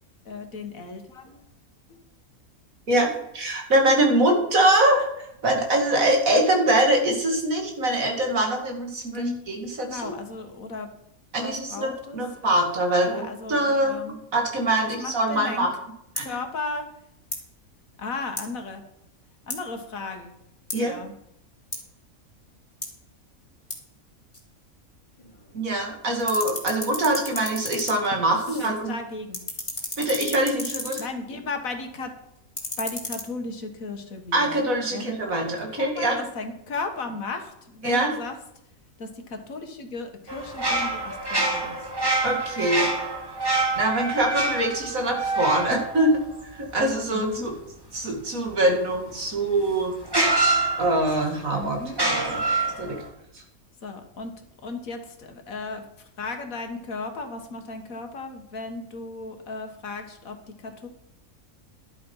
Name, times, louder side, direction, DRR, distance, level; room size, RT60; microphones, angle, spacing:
voice 1, 0.3-1.5 9.1-9.5 9.9-10.9 11.4-12.6 13.1-14.2 14.8-15.7 16.2-16.8 18.0-18.8 19.5-20.3 20.9-21.1 28.5-29.4 31.0-32.1 32.8-34.6 34.9-35.2 35.7-38.3 39.0-41.9 47.1-47.5 51.5-52.0 53.8-54.3 54.6-60.4 60.6-60.9, left 3 dB, 70° left, 6 dB, 1.9 m, -35 dB
voice 2, 2.9-5.1 5.4-10.1 11.3-14.0 14.3-15.7 16.2-16.4 20.7-21.0 25.5-28.9 30.0-31.0 34.3-36.2 37.8-38.2 42.2-42.9 43.8-46.1 46.5-47.5 47.9-49.9 50.8-51.8 52.1-52.4 52.8-53.0 53.3-53.4, right 1 dB, 70° right, 2 dB, 2.7 m, -23 dB
sound 1, 16.2-16.3 17.2-17.5 18.4-18.5 19.5-19.6 20.7-20.8 21.7-21.9 22.8-22.9 23.7-23.8 24.3-24.4 25.2-25.9 26.1-28.8 29.1-31.1 32.4-33.2, left 1 dB, 20° left, 2.5 m, -34 dB
sound 2, 40.3-46.9 49.2-49.3 50.1-51.3 51.9-53.0, right 2 dB, 15° right, 1.9 m, -26 dB
12.0 x 8.0 x 5.5 m, 0.78 s
omnidirectional pair, 1.5 m